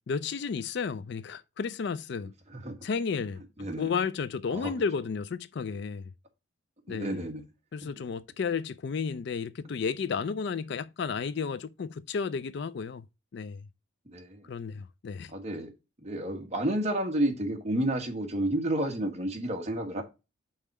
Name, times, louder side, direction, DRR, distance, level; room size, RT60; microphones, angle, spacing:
voice 1, 0.1-2.3 2.8-6.1 6.9-7.2 7.7-13.1 13.3-13.7 14.5-15.3, left 5 dB, 60° left, 0.4 m, -33 dB
voice 2, 3.6-3.9 4.5-4.7 6.9-7.4 7.8-7.9 14.1-14.5 15.3-15.7 16.0-20.0, right 1 dB, 35° right, 1.4 m, -30 dB
5.5 x 4.3 x 4.6 m
head